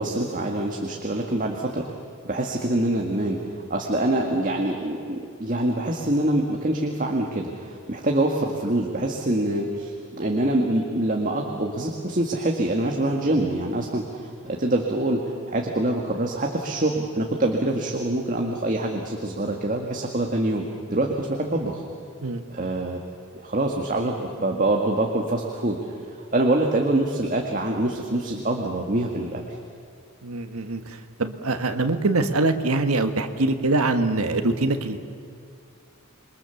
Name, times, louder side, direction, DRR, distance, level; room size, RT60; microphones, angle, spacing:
voice 1, 0.0-1.8 2.2-21.8 22.5-23.0 23.4-25.8 26.3-29.6, right 1 dB, 40° right, 1 dB, 1.9 m, -25 dB
voice 2, 30.2-35.0, right 2 dB, 90° right, 7 dB, 1.5 m, -24 dB
28.0 x 23.0 x 7.1 m, 2.5 s
head